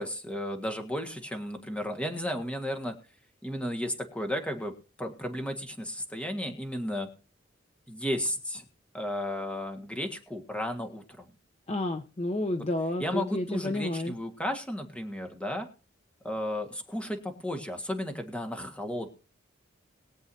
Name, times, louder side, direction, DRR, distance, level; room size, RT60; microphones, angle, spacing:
voice 1, 0.0-3.0 3.4-7.1 7.9-8.7 8.9-11.3 13.0-15.7 16.2-19.1, left 1 dB, 5° left, 5 dB, 1.7 m, -34 dB
voice 2, 11.7-14.1, left 1 dB, 35° left, 6 dB, 0.7 m, -30 dB
22.0 x 7.9 x 2.8 m, 0.36 s
head